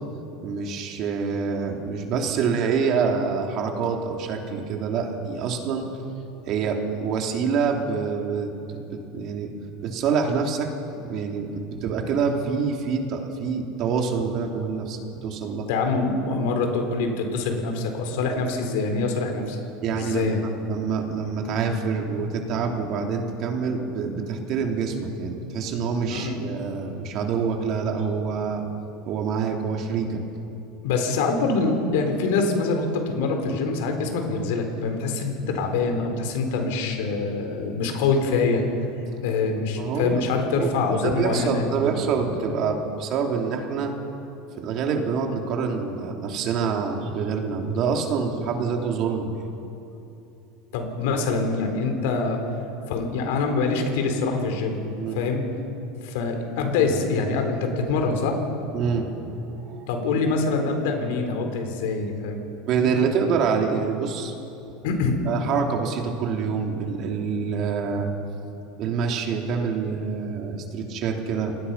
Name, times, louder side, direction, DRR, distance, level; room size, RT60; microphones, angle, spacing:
voice 1, 0.4-5.9 6.5-9.5 9.8-15.7 19.8-28.7 29.0-30.2 39.8-40.2 40.5-40.7 41.0-43.9 44.6-49.4 55.0-55.2 58.7-59.9 62.6-64.3 65.3-68.1 68.8-71.5, right 5 dB, 50° right, 2 dB, 3.1 m, -26 dB
voice 2, 15.7-19.6 19.9-20.4 26.1-26.4 30.8-38.6 39.2-41.9 50.7-52.4 52.9-54.8 55.1-55.4 56.0-58.4 59.9-62.4 64.8-65.2, left 4 dB, 75° left, 4 dB, 4.1 m, -25 dB
28.5 x 19.0 x 5.7 m, 2.9 s
supercardioid pair, 120°, 0 cm